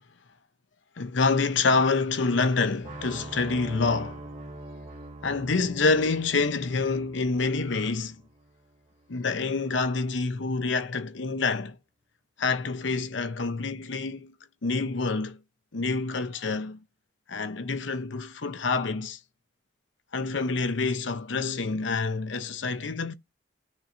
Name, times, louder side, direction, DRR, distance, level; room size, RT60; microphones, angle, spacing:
voice 1, 1.0-4.2 5.2-8.2 9.1-11.8 12.4-14.3 14.6-15.4 15.7-16.8 17.3-19.2 20.1-23.1, left 4 dB, 80° left, 0.7 m, -27 dB
sound 1, 2.8-8.8, right 2 dB, 40° right, 2.1 m, -43 dB
13.0 x 4.5 x 2.6 m
head